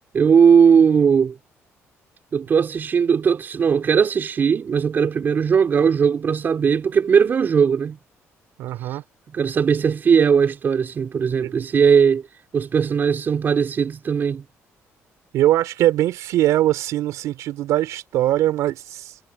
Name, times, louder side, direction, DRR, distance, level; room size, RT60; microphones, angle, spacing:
voice 1, 0.1-1.4 2.3-8.0 9.3-12.3 12.5-14.4, right 6 dB, 40° right, 4.7 m, -18 dB
voice 2, 8.6-9.0 11.4-11.5 15.3-19.2, right 13 dB, 85° right, 3.8 m, -21 dB
cardioid pair, 140°, 5 cm